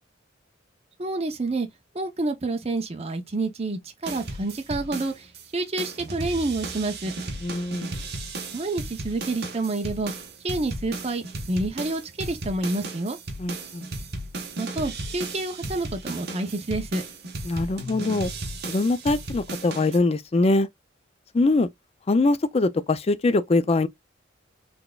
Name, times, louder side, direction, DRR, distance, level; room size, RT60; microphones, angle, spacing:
voice 1, 1.0-1.7 1.9-5.3 5.5-7.1 8.5-10.1 10.4-13.2 14.6-17.0, right 2 dB, 30° right, 0.7 m, -28 dB
sound 1, 4.0-5.4 5.8-20.0, right 2 dB, 55° right, 1.1 m, -35 dB
voice 2, 7.4-7.9 13.4-13.8 17.4-18.3 18.7-20.7 21.3-21.7 22.1-23.9, left 2 dB, 30° left, 0.4 m, -23 dB
3.9 x 3.4 x 2.3 m
head